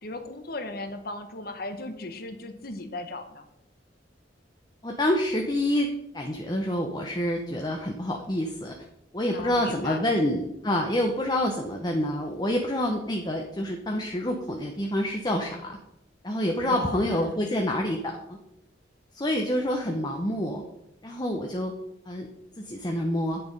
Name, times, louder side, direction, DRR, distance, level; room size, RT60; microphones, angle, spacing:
voice 1, 0.0-3.5 9.3-10.0 16.7-17.4, left 2 dB, 50° left, 8 dB, 1.1 m, -36 dB
voice 2, 4.8-5.9 6.1-8.8 9.1-15.8 16.2-18.4 19.1-20.6 21.0-21.7 22.1-22.3 22.6-23.4, left 1 dB, 20° left, 2 dB, 0.8 m, -27 dB
9.5 x 6.8 x 5.3 m, 0.83 s
head